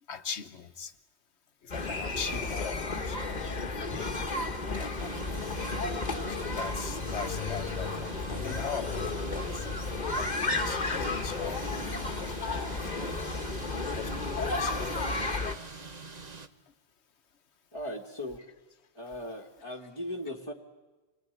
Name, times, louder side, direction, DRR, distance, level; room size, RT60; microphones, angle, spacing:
voice 1, 0.1-0.9 1.6-3.2 3.9-4.2 4.7-5.3 6.3-9.7 10.2-11.7 12.1-13.2 13.9-15.0 15.3-15.4, left 7 dB, 85° left, 1.4 m, -41 dB
sound 1, 1.7-15.5, left 3 dB, 45° left, 1.4 m, -33 dB
sound 2, 5.0-16.5, right 4 dB, 40° right, 1.2 m, -45 dB
voice 2, 17.7-18.4 18.9-20.5, left 1 dB, 20° left, 1.6 m, -38 dB
27.5 x 20.5 x 9.2 m
omnidirectional pair, 1.1 m